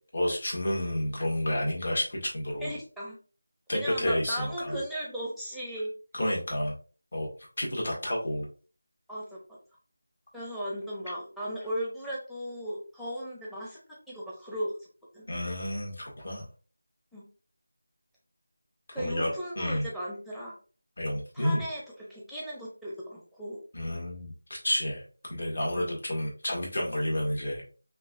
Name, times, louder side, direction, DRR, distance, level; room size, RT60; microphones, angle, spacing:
voice 1, 0.1-2.7 3.7-4.8 6.1-6.7 7.1-7.3 7.6-8.5 15.3-16.4 19.0-19.3 19.6-19.9 21.0-21.6 23.7-25.0 25.3-27.6, left 1 dB, 55° left, -2 dB, 1.7 m, -30 dB
voice 2, 2.6-3.2 3.7-5.9 9.1-9.4 10.3-13.8 14.1-14.7 15.1-15.3 17.1-17.3 18.9-20.6 21.3-21.8 22.1-23.6 25.7-25.9, equal, ahead, -5 dB, 0.7 m, -36 dB
5.2 x 2.4 x 2.6 m, 0.37 s
figure-of-eight pair, 170°, 0 cm